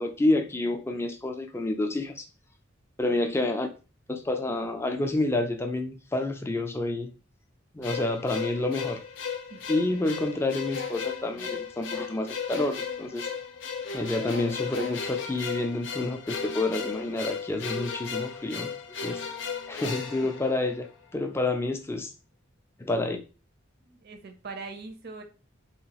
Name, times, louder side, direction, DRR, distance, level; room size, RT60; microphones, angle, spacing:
voice 1, 0.0-2.3 3.0-3.7 4.1-7.1 7.7-9.0 9.7-13.3 13.9-18.7 19.0-19.2 19.7-22.1 22.8-23.2, left 2 dB, 15° left, 5 dB, 0.3 m, -29 dB
sound 1, 7.8-21.1, left 6 dB, 65° left, 0.5 m, -35 dB
voice 2, 23.8-25.2, right 4 dB, 55° right, 6 dB, 0.5 m, -42 dB
2.8 x 2.3 x 2.8 m, 0.33 s
head